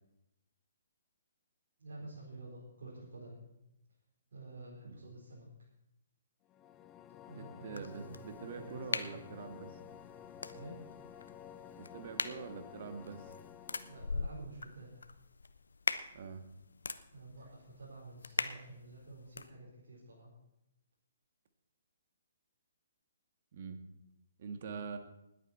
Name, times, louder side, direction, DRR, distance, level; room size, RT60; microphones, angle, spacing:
voice 1, 1.8-3.4 4.3-5.5 7.2-9.3 10.5-10.8 13.9-15.0 17.1-20.3, right 2 dB, 65° right, -6 dB, 4.2 m, -50 dB
sound 1, 6.5-14.3, left 9 dB, 20° left, 0.5 m, -52 dB
voice 2, 7.3-9.8 11.8-13.4 16.1-16.4 23.5-23.8 24.4-25.0, right 5 dB, 50° right, 6 dB, 1.6 m, -45 dB
sound 2, 7.7-19.5, left 4 dB, 80° left, 0.7 m, -42 dB
sound 3, 8.6-11.7 12.9-15.8, equal, 85° right, 2.5 m, -65 dB
20.0 x 8.5 x 4.3 m, 0.86 s
figure-of-eight pair, 135°, 0 cm